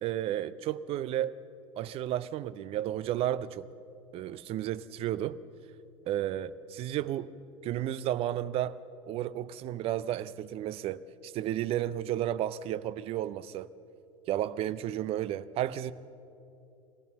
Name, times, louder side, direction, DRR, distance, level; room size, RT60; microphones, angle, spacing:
voice 1, 0.0-1.4 1.8-3.6 4.1-5.4 6.1-7.3 7.6-8.8 9.1-13.7 14.3-15.9, right 12 dB, 35° right, 17 dB, 0.6 m, -32 dB
23.5 x 16.5 x 7.0 m, 2.8 s
figure-of-eight pair, 80°, 17 cm